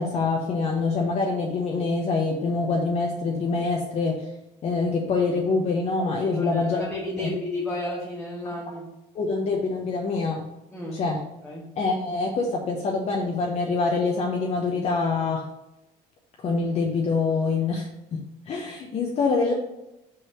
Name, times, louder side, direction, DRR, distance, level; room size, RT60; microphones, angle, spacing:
voice 1, 0.0-4.2 4.6-6.9 7.2-7.3 9.1-10.4 10.9-11.2 11.8-15.4 16.4-17.9 18.1-19.5, left 4 dB, 45° left, -1 dB, 0.9 m, -25 dB
voice 2, 6.2-8.8 10.7-11.0 11.4-11.7, left 1 dB, 5° left, -5 dB, 1.2 m, -32 dB
5.5 x 4.1 x 4.9 m, 0.92 s
cardioid pair, 125°, 16 cm